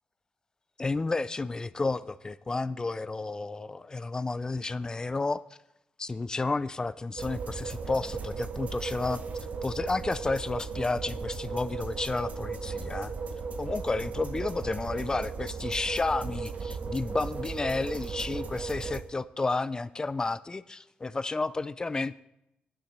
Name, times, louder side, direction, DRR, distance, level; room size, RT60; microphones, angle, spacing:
voice 1, 0.8-5.4 6.0-9.2 9.6-13.1 13.6-22.2, left 3 dB, 25° left, 17 dB, 0.3 m, -31 dB
sound 1, 7.2-19.0, right 5 dB, 50° right, 0.9 m, -36 dB
9.4 x 7.1 x 6.6 m, 0.86 s
cardioid pair, 95°, 3 cm